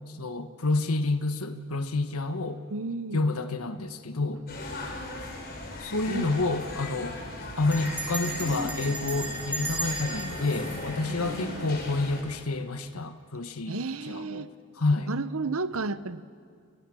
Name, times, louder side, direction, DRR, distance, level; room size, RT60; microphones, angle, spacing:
voice 1, 0.1-2.6 3.1-4.4 5.8-7.2 7.6-14.5 14.7-15.1, left 2 dB, 90° left, 8 dB, 1.3 m, -29 dB
voice 2, 2.7-3.2 6.1-6.4 11.0-11.7 13.7-14.5 15.1-16.2, right 3 dB, 75° right, 14 dB, 0.9 m, -33 dB
sound 1, 4.5-12.2, left 2 dB, 45° left, 4.9 m, -38 dB
Bell, 5.6-5.9 6.2-6.3 6.5-6.9 7.7-11.8, right 2 dB, 5° right, 4.8 m, -36 dB
29.5 x 29.5 x 6.3 m, 2.2 s
head